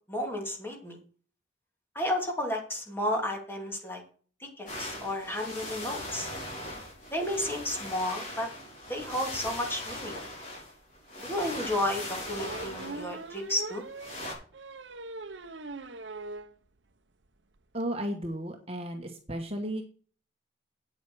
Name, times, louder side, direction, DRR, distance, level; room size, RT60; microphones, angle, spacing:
voice 1, 0.1-1.0 1.9-4.0 4.6-6.3 7.1-8.5 8.9-10.2 11.2-13.8, left 1 dB, 10° left, 2 dB, 2.7 m, -32 dB
sound 1, 4.7-14.3, left 1 dB, 45° left, 5.4 m, -40 dB
sound 2, 10.9-11.0 12.2-16.5 16.9-17.0 17.3-17.4 17.6-17.8, right 3 dB, 85° right, 1.0 m, -41 dB
voice 2, 17.7-19.8, right 1 dB, 35° right, 4 dB, 1.4 m, -34 dB
8.9 x 8.3 x 6.2 m, 0.42 s
head